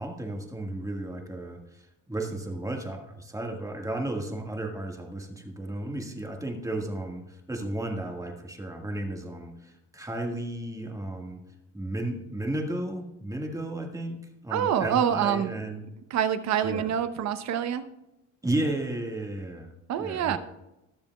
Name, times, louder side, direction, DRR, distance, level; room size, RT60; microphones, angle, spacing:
voice 1, 0.0-11.4 11.7-15.8 16.6-16.9 18.4-19.7 20.0-20.4, right 1 dB, 10° right, 2 dB, 1.6 m, -33 dB
voice 2, 14.5-15.6 16.1-17.8 19.9-20.4, right 9 dB, 60° right, 10 dB, 0.9 m, -26 dB
20.0 x 7.1 x 2.3 m, 0.90 s
cardioid pair, 100°, 31 cm